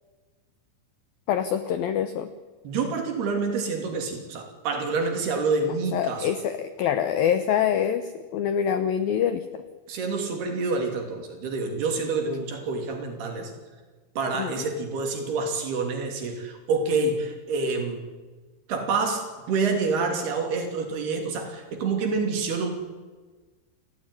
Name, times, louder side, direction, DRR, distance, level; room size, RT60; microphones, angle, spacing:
voice 1, 1.3-2.3 5.9-9.6 14.4-14.5, left 9 dB, 80° left, 11 dB, 2.1 m, -25 dB
voice 2, 2.6-6.3 9.9-13.5 14.2-18.1 18.7-22.7, right 4 dB, 60° right, 4 dB, 4.7 m, -27 dB
28.5 x 15.0 x 9.8 m, 1.3 s
omnidirectional pair, 5.5 m